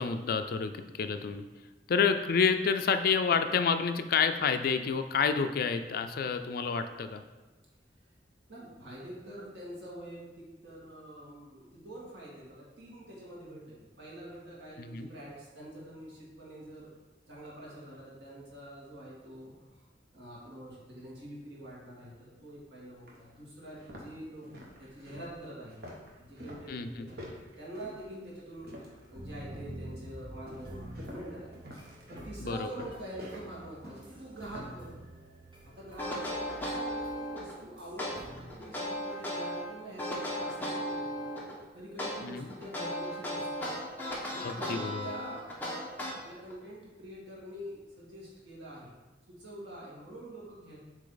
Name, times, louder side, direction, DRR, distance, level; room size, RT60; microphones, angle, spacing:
voice 1, 0.0-1.4 1.9-7.2 14.8-15.1 26.7-27.1 32.4-32.7 42.2-42.5 44.4-45.1, left 5 dB, 55° left, 9 dB, 0.4 m, -29 dB
voice 2, 8.5-16.9 17.3-19.9 20.1-24.5 24.8-25.8 26.2-31.8 32.1-35.0 35.8-43.7 44.2-45.5 46.2-48.9 49.3-50.8, right 1 dB, 80° right, -6 dB, 2.0 m, -46 dB
sound 1, 22.5-22.6 23.1-23.2 23.6-29.1 29.5-29.9 30.5-34.8, equal, 60° right, 1.1 m, -48 dB
sound 2, 28.6-38.5, right 1 dB, 30° right, 1.0 m, -48 dB
sound 3, 36.0-37.5 38.0-39.6 40.0-41.5 42.0-46.5, left 1 dB, 10° left, 1.1 m, -35 dB
7.3 x 3.3 x 3.9 m, 1.2 s
head